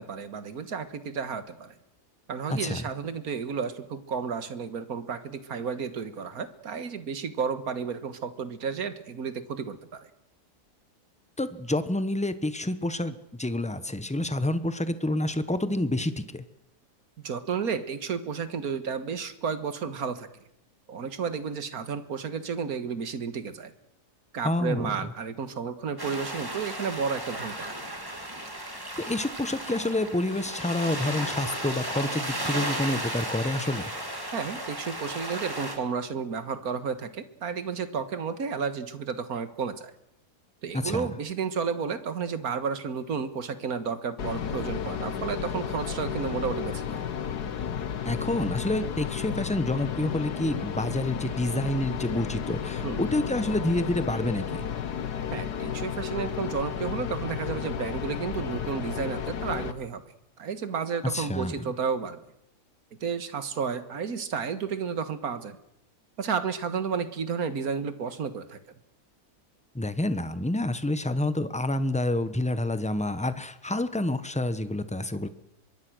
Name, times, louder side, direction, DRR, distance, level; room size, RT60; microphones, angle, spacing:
voice 1, 0.0-1.7 2.3-10.1 17.2-20.3 20.9-23.7 24.3-27.8 34.3-39.9 40.6-47.0 52.8-53.0 55.3-60.0 60.4-62.2 63.0-65.6 66.2-68.6, right 6 dB, 65° right, 11 dB, 1.9 m, -32 dB
voice 2, 2.5-2.9 11.4-16.4 24.4-24.9 29.0-33.9 40.7-41.1 48.0-54.7 61.1-61.7 69.7-75.3, left 1 dB, 5° left, 12 dB, 0.9 m, -28 dB
sound 1, 26.0-35.8, right 1 dB, 15° right, 2.9 m, -34 dB
sound 2, 44.2-59.7, left 8 dB, 90° left, 1.8 m, -33 dB
24.5 x 22.0 x 6.3 m, 0.81 s
omnidirectional pair, 1.7 m